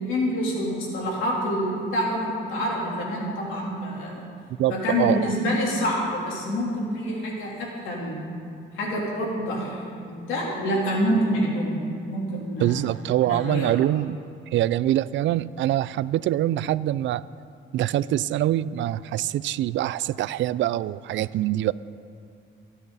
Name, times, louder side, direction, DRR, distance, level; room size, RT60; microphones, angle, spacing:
voice 1, 0.0-4.2 4.7-8.2 8.7-9.8 10.1-12.7 13.2-13.7, equal, 85° left, -3 dB, 3.4 m, -27 dB
voice 2, 4.6-5.3 12.6-14.2 14.5-17.2 17.7-21.7, right 13 dB, 70° right, 18 dB, 0.4 m, -24 dB
24.5 x 9.1 x 4.1 m, 2.5 s
cardioid pair, 90°, 20 cm